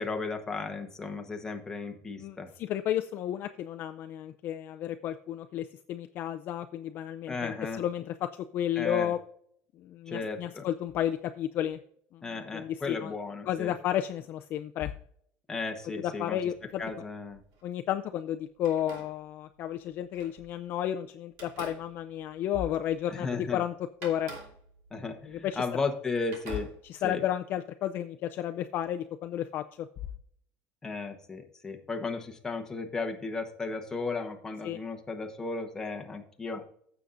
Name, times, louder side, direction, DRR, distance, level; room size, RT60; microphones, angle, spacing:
voice 1, 0.0-2.5 7.3-7.8 8.8-9.1 10.1-10.6 12.2-13.7 15.5-16.4 16.8-17.4 23.1-23.6 24.9-26.7 27.0-27.2 30.8-36.6, left 4 dB, 10° left, 4 dB, 1.0 m, -35 dB
voice 2, 2.2-9.2 9.8-11.8 12.1-13.1 13.5-15.0 16.0-16.8 17.6-23.7 24.0-24.3 25.3-25.8 26.8-29.9 34.6-34.8, left 11 dB, 40° left, 7 dB, 0.4 m, -32 dB
sound 1, 16.5-17.7 18.6-20.8 21.3-23.2 23.5-23.6 24.0-26.0 26.3-27.3, right 2 dB, 65° right, 2.9 m, -49 dB
15.0 x 6.8 x 2.5 m, 0.66 s
cardioid pair, 180°, 6 cm